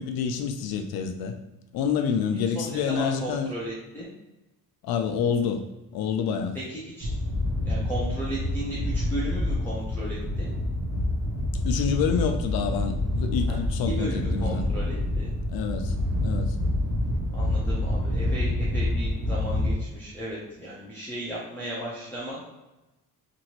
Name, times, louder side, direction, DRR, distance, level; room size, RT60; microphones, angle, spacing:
voice 1, 0.0-1.3 1.7-3.5 4.8-6.6 11.6-14.7 15.5-16.0 16.2-16.6, left 6 dB, 80° left, 6 dB, 0.5 m, -27 dB
voice 2, 2.3-4.1 6.5-7.1 7.6-10.5 13.5-13.6 14.0-15.3 17.3-22.4, equal, 5° left, -9 dB, 0.5 m, -35 dB
sound 1, 7.0-19.8, left 1 dB, 45° right, 0.6 m, -27 dB
3.0 x 2.6 x 2.8 m, 1.0 s
cardioid pair, 170°, 36 cm